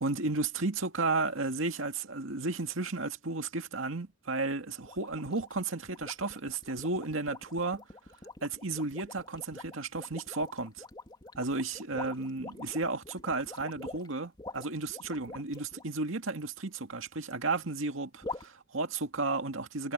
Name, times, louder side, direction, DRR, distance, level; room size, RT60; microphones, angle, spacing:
voice 1, 0.0-7.8 8.4-10.8 11.4-19.9, right 3 dB, 85° right, 2.1 m, -33 dB
sound 1, 4.8-15.8 18.2-18.5, left 2 dB, 25° left, 2.6 m, -45 dB
head